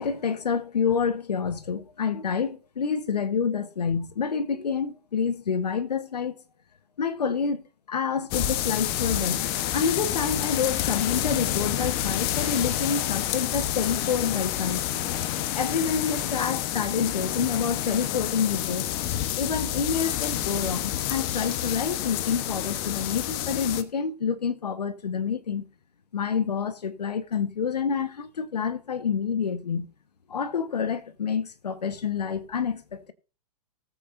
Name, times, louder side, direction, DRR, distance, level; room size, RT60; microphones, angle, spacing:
voice 1, 0.0-6.4 7.0-9.4 9.7-15.2 15.5-18.9 19.4-25.7 26.1-29.9 30.3-33.1, left 6 dB, 90° left, 1.3 m, -28 dB
sound 1, 8.3-23.8, left 12 dB, 40° left, 1.1 m, -29 dB
19.5 x 8.2 x 2.6 m
hypercardioid pair, 130°, 20 cm